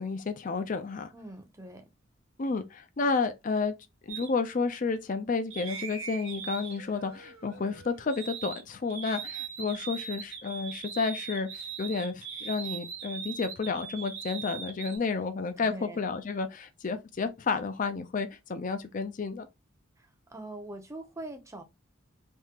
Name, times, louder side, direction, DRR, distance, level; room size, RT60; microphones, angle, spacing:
voice 1, 0.0-1.1 2.4-3.8 4.0-19.5, left 4 dB, 40° left, 0.4 m, -31 dB
voice 2, 1.1-1.9 15.6-16.1 20.0-21.6, right 2 dB, 15° right, 0.6 m, -43 dB
sound 1, 4.1-4.3 5.5-8.6 8.9-15.0, right 7 dB, 70° right, 1.1 m, -40 dB
3.6 x 2.8 x 2.9 m
head